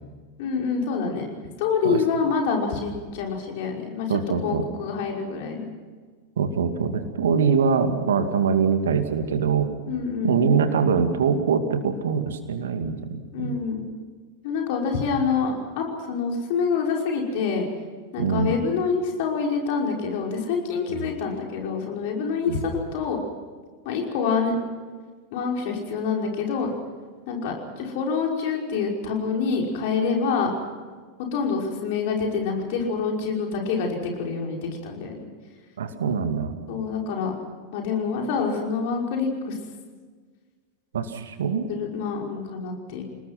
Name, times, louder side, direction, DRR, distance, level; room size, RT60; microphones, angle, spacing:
voice 1, 0.4-1.3 1.6-5.7 9.9-10.6 13.3-13.9 14.4-17.7 18.1-23.2 23.9-24.5 25.3-26.7 27.3-30.5 31.3-35.1 36.7-37.3 37.7-39.6 41.7-43.0, left 5 dB, 50° left, 0 dB, 5.5 m, -26 dB
voice 2, 4.1-4.6 6.4-9.7 10.2-13.6 18.2-18.5 20.9-21.1 22.5-22.6 35.8-36.6 40.9-41.7, right 6 dB, 65° right, 8 dB, 2.4 m, -23 dB
29.5 x 20.0 x 6.1 m, 1.5 s
figure-of-eight pair, 90°, 0 cm